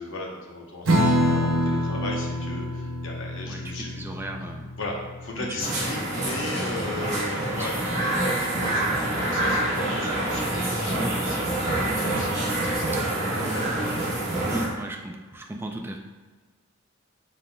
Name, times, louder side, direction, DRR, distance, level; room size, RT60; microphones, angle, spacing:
voice 1, 0.0-4.0 4.8-7.8 8.2-14.0, left 2 dB, 65° left, -1 dB, 0.9 m, -37 dB
Strum, 0.8-7.7, equal, 70° right, 0.8 m, -27 dB
voice 2, 3.5-4.7 5.4-5.7 7.5-8.0 10.9-11.2 14.5-16.0, right 1 dB, 10° right, 2 dB, 0.3 m, -35 dB
sound 1, 5.6-14.7, right 1 dB, 35° right, 1.1 m, -26 dB
5.5 x 3.7 x 2.3 m, 1.4 s
head